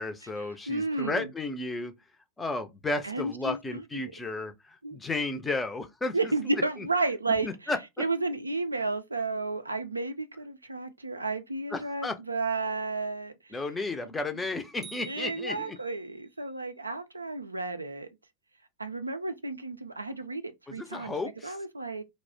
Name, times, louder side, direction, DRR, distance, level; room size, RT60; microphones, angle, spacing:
voice 1, 0.0-1.9 2.4-6.2 7.4-8.0 11.7-12.2 13.5-15.8 20.7-21.6, left 2 dB, 10° left, 0.5 m, -33 dB
voice 2, 0.7-1.3 3.0-3.8 4.8-5.0 6.1-7.7 8.0-13.6 14.3-14.4 15.1-18.1 18.8-21.1 21.4-22.0, right 3 dB, 80° right, 0.3 m, -32 dB
sound 1, 14.8-16.2, right 6 dB, 20° right, 0.7 m, -49 dB
2.4 x 2.0 x 3.4 m
figure-of-eight pair, 90°, 0 cm